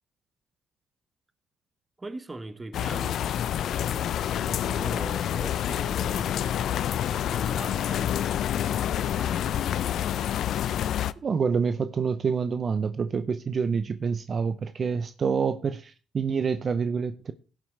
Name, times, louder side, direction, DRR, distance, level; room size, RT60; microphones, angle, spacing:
voice 1, 2.0-9.8, right 2 dB, 20° right, 1.0 m, -42 dB
sound 1, 2.7-11.1, left 10 dB, 70° left, 0.4 m, -28 dB
voice 2, 11.2-17.3, right 5 dB, 45° right, 0.6 m, -27 dB
17.0 x 7.5 x 3.2 m
cardioid pair, 90°, 0 cm